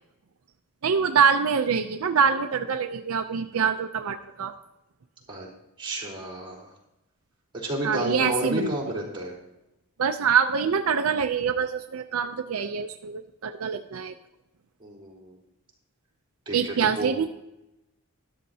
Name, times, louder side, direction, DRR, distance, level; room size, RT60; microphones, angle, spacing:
voice 1, 0.8-4.5 7.8-8.7 10.0-14.1 16.5-17.3, right 6 dB, 80° right, 6 dB, 0.5 m, -25 dB
voice 2, 5.8-6.7 7.5-9.3 14.8-15.4 16.5-17.1, right 1 dB, 25° right, -5 dB, 3.8 m, -31 dB
13.0 x 11.5 x 2.8 m, 0.90 s
head